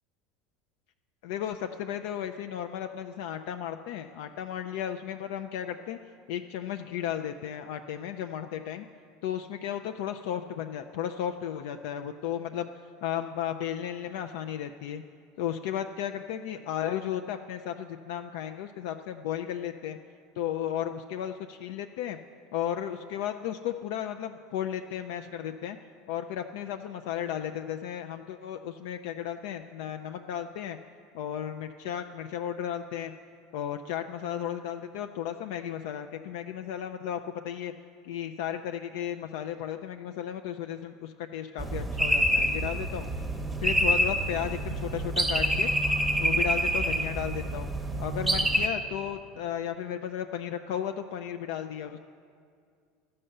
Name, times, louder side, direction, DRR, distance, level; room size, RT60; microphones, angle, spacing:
voice 1, 1.2-6.0 6.3-8.9 9.2-12.7 13.0-15.0 15.4-20.0 20.4-22.2 22.5-25.8 26.1-30.8 31.1-33.1 33.5-37.7 38.0-43.1 43.6-45.7 46.2-47.7 48.0-52.0, left 10 dB, 75° left, 7 dB, 0.4 m, -34 dB
sound 1, 41.6-48.7, equal, 10° right, 0.8 m, -27 dB
12.0 x 5.5 x 7.8 m, 2.2 s
supercardioid pair, 120°, 0 cm